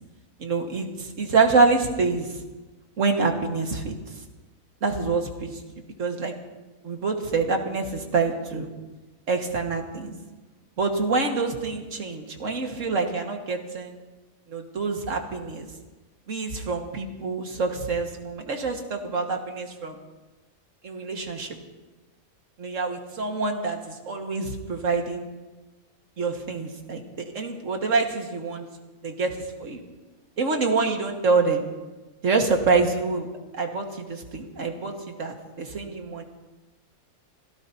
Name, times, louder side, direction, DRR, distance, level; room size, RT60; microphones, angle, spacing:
voice 1, 0.4-2.3 3.0-4.0 4.8-5.6 6.0-6.3 6.8-8.7 9.3-10.1 10.8-14.0 14.5-15.7 16.3-20.0 20.8-21.6 22.6-25.3 26.2-28.7 29.0-29.8 30.4-31.6 32.2-33.3 33.5-36.2, right 4 dB, 60° right, 3 dB, 2.0 m, -26 dB
26.5 x 17.0 x 2.8 m, 1.2 s
omnidirectional pair, 1.5 m